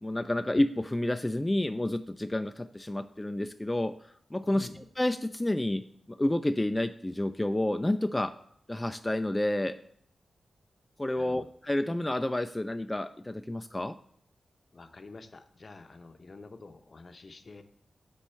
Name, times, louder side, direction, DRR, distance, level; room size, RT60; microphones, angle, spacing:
voice 1, 0.0-8.3 8.7-9.8 11.0-14.0, left 1 dB, 20° left, 8 dB, 0.3 m, -30 dB
voice 2, 11.2-11.5 14.7-17.6, left 3 dB, 55° left, 8 dB, 0.7 m, -48 dB
4.4 x 4.3 x 5.5 m, 0.70 s
supercardioid pair, 40°, 0 cm